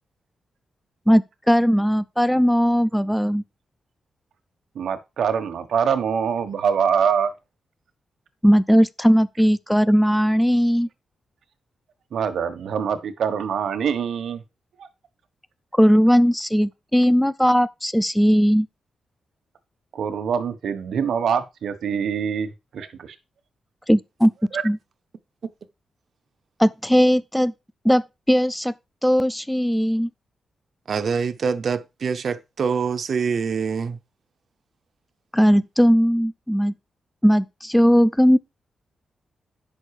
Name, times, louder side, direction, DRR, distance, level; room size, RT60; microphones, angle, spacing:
voice 1, 1.1-3.4 8.4-10.9 15.8-18.7 23.9-24.3 24.6-24.8 26.6-27.5 27.8-28.0 28.3-28.7 29.0-30.1 35.3-36.7 37.2-38.4, equal, 5° left, 0.5 m, -18 dB
voice 2, 4.7-7.3 12.1-14.4 19.9-22.5 22.7-23.1, right 7 dB, 75° right, 1.4 m, -24 dB
voice 3, 30.9-34.0, right 6 dB, 50° right, 0.8 m, -25 dB
9.3 x 6.4 x 4.9 m
wide cardioid pair, 140°, 0 cm